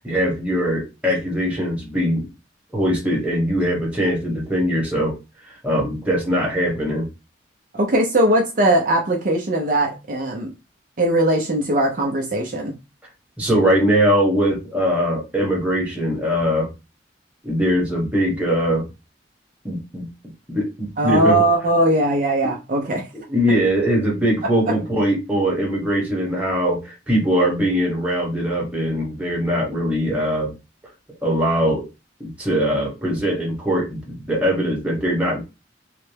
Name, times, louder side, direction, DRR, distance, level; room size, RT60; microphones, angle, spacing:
voice 1, 0.0-2.3 2.7-5.1 5.6-7.1 13.4-16.7 17.4-18.8 19.6-20.0 20.5-21.5 22.4-22.5 23.1-30.5 31.2-31.8 32.2-35.4, equal, 10° right, 1.1 m, -21 dB
voice 2, 7.7-10.5 11.0-12.8 21.0-23.1 24.7-24.8, right 1 dB, 50° right, 0.6 m, -19 dB
3.2 x 2.1 x 3.2 m
head